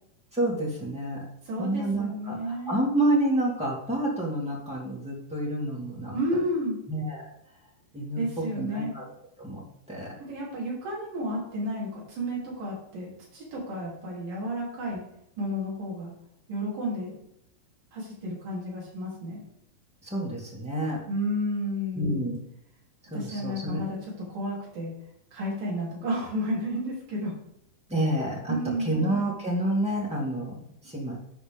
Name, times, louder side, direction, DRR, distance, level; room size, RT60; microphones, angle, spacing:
voice 1, 0.3-1.2 1.6-6.2 6.9-7.2 7.9-9.0 9.4-9.6 9.9-10.1 20.0-21.0 22.0-22.4 23.1-23.8 27.9-28.5 28.8-30.6 30.8-31.2, right 1 dB, 10° right, -4 dB, 0.4 m, -28 dB
voice 2, 1.5-2.8 6.1-6.8 8.2-8.9 10.2-15.0 15.4-16.1 16.5-17.2 17.9-19.4 21.1-22.2 23.1-24.9 25.3-27.3 28.5-29.0, equal, 55° right, -4 dB, 4.7 m, -32 dB
13.0 x 5.2 x 3.5 m, 0.80 s
omnidirectional pair, 4.7 m